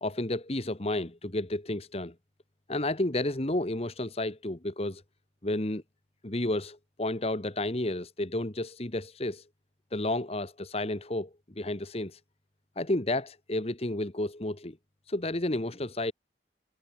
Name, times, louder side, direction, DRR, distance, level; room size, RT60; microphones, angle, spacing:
voice 1, 0.0-2.1 2.7-5.0 5.4-5.8 6.2-9.4 9.9-11.3 11.5-12.2 12.8-14.8 15.1-16.1, left 1 dB, 35° left, 1.4 m, -31 dB
head